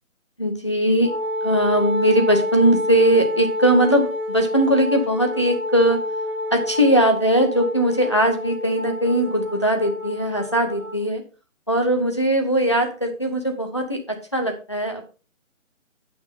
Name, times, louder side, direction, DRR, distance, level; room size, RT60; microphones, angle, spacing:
voice 1, 0.4-1.1 1.4-6.0 6.5-11.2 11.7-14.0 14.3-15.0, right 1 dB, 20° left, 2 dB, 0.8 m, -20 dB
Wind instrument woodwind instrument, 1.0-11.0, left 1 dB, 70° left, 1.2 m, -28 dB
8.4 x 6.0 x 4.1 m, 0.36 s
hypercardioid pair, 180°, 39 cm